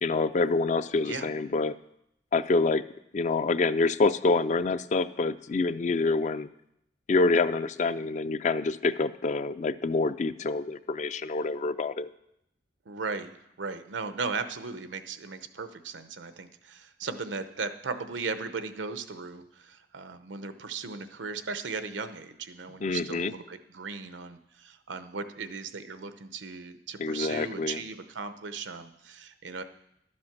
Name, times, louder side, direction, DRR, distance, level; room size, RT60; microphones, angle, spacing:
voice 1, 0.0-1.8 2.3-2.8 3.1-6.5 7.1-12.1 22.8-23.3 27.0-27.8, left 3 dB, 40° left, 13 dB, 0.4 m, -26 dB
voice 2, 12.9-29.6, right 4 dB, 90° right, 10 dB, 0.8 m, -37 dB
12.0 x 7.6 x 5.9 m, 0.79 s
head